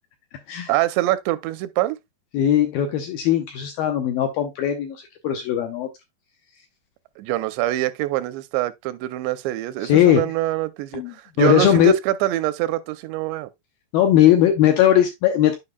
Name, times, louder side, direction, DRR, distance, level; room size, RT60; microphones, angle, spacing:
voice 1, 0.7-2.0 7.2-13.5, right 15 dB, 90° right, 2.8 m, -24 dB
voice 2, 2.3-5.0 5.2-5.9 9.8-10.3 10.9-11.9 13.9-15.6, left 11 dB, 80° left, 2.2 m, -18 dB
9.7 x 5.3 x 2.2 m
omnidirectional pair, 4.9 m